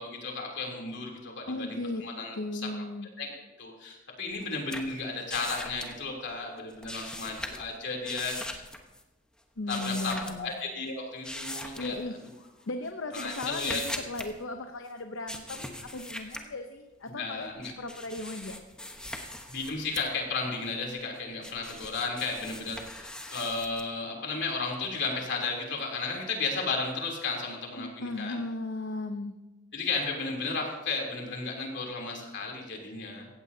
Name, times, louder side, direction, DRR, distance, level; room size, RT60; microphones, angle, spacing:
voice 1, 0.0-2.6 3.2-3.3 3.6-8.3 9.7-11.9 13.1-13.8 17.1-17.7 19.2-28.4 29.7-33.3, left 3 dB, 65° left, 0 dB, 3.3 m, -34 dB
voice 2, 1.5-2.0 2.3-3.1 9.6-10.5 11.8-12.1 12.7-18.6 27.8-29.3, left 2 dB, 80° left, 6 dB, 0.8 m, -36 dB
sound 1, 4.3-6.3 6.6-7.7 8.0-9.0 9.7-10.6 11.2-12.3 12.8-14.3 15.3-16.4 17.4-20.1 20.6-23.8, left 1 dB, 5° left, 1.1 m, -40 dB
17.0 x 15.0 x 2.8 m, 1.1 s
head